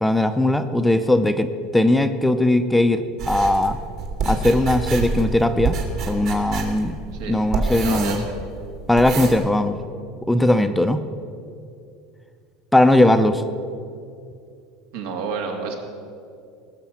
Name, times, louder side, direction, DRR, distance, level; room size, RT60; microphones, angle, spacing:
voice 1, 0.0-3.8 4.3-5.8 6.1-6.9 7.3-8.2 8.9-9.7 10.3-11.0 12.7-13.4, left 1 dB, 5° left, 9 dB, 0.5 m, -19 dB
sound 1, 3.2-9.4, right 4 dB, 50° right, 2.4 m, -27 dB
voice 2, 7.8-8.2 10.6-10.7 14.9-15.8, right 5 dB, 80° right, 3 dB, 2.4 m, -29 dB
18.5 x 6.7 x 7.3 m, 2.5 s
supercardioid pair, 150°, 0 cm